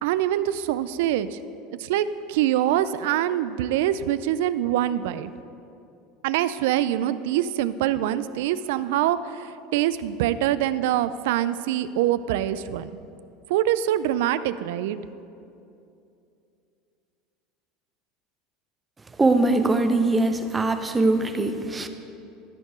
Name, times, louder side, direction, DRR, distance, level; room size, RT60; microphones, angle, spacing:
voice 1, 0.0-1.4 1.8-5.3 6.2-12.9 13.5-15.0, right 12 dB, 80° right, 14 dB, 0.3 m, -24 dB
voice 2, 19.2-21.9, right 2 dB, 15° right, 8 dB, 0.5 m, -22 dB
13.5 x 4.5 x 5.0 m, 2.6 s
supercardioid pair, 130°, 0 cm